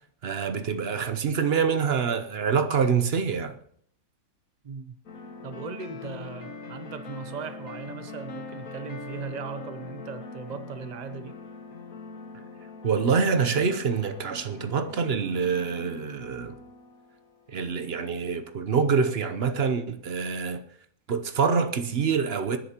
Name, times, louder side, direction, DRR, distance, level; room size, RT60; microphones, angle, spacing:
voice 1, 0.2-3.5 12.8-16.6 17.5-20.6 21.1-22.6, right 6 dB, 50° right, 0.8 m, -26 dB
voice 2, 4.6-5.0 5.4-11.4, right 5 dB, 85° right, 0.3 m, -38 dB
sound 1, 5.1-18.6, left 4 dB, 55° left, 1.7 m, -43 dB
26.5 x 10.0 x 2.9 m
omnidirectional pair, 1.9 m